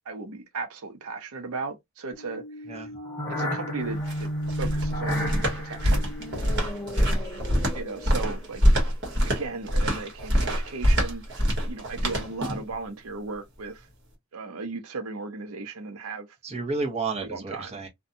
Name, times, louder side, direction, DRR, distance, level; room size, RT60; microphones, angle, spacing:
voice 1, 0.1-2.4 3.3-4.3 4.6-6.1 7.7-8.7 9.3-11.2 11.6-13.8 14.3-16.3 17.2-17.7, right 3 dB, 80° right, 0.6 m, -36 dB
sound 1, 2.1-8.5, equal, 15° left, 0.9 m, -33 dB
sound 2, 3.8-12.7, equal, 50° right, 1.1 m, -25 dB
voice 2, 16.4-17.9, right 3 dB, 30° right, 0.7 m, -32 dB
2.6 x 2.2 x 2.6 m
head